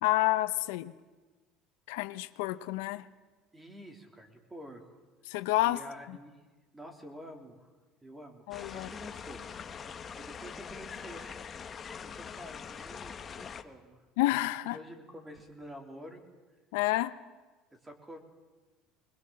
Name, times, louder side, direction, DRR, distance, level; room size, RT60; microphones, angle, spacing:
voice 1, 0.0-0.9 1.9-3.1 5.3-5.8 6.1-6.2 8.5-8.9 14.2-14.8 16.7-17.1, left 17 dB, 85° left, 12 dB, 0.8 m, -29 dB
voice 2, 3.5-5.0 5.6-6.4 6.7-7.7 8.0-9.8 10.1-11.3 12.0-14.0 14.7-16.2 17.7-18.2, equal, 10° right, 4 dB, 3.4 m, -48 dB
sound 1, 8.5-13.6, left 6 dB, 30° left, 1.1 m, -43 dB
21.5 x 21.0 x 7.6 m, 1.3 s
supercardioid pair, 125°, 0 cm